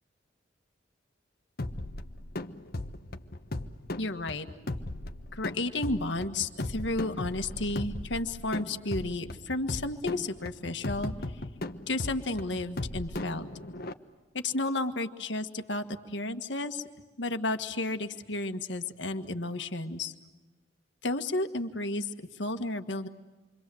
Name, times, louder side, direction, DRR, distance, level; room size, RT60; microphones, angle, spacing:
sound 1, 1.6-13.9, left 1 dB, 55° left, 1.2 m, -37 dB
voice 1, 4.0-4.5 5.3-11.1 11.9-13.5 14.4-16.8 17.2-20.1 21.0-22.1 22.4-23.1, left 2 dB, 70° left, 7 dB, 1.7 m, -32 dB
28.0 x 25.5 x 7.8 m, 1.2 s
head